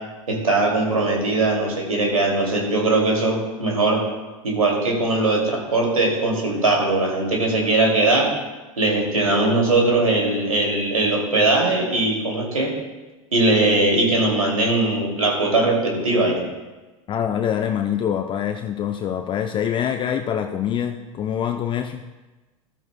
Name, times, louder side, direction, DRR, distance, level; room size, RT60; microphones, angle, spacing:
voice 1, 0.3-4.0 4.4-8.3 8.8-12.7 13.3-16.4, right 2 dB, 85° right, -1 dB, 2.5 m, -20 dB
voice 2, 17.1-22.0, left 9 dB, 30° left, 6 dB, 0.5 m, -25 dB
13.5 x 13.5 x 2.2 m, 1.2 s
figure-of-eight pair, 85°, 18 cm